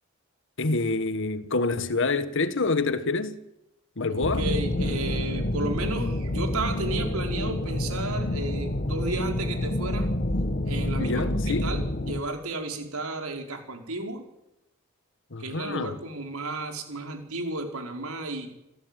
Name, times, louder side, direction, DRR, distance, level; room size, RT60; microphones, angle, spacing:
voice 1, 0.6-3.4 4.0-4.4 11.0-11.7 15.3-16.0, left 3 dB, 60° left, 1.5 m, -27 dB
voice 2, 4.1-10.1 10.6-14.2 15.4-18.5, right 2 dB, 90° right, 5.0 m, -33 dB
sound 1, 4.2-12.2, left 1 dB, 40° left, 1.4 m, -28 dB
28.0 x 16.0 x 9.1 m
head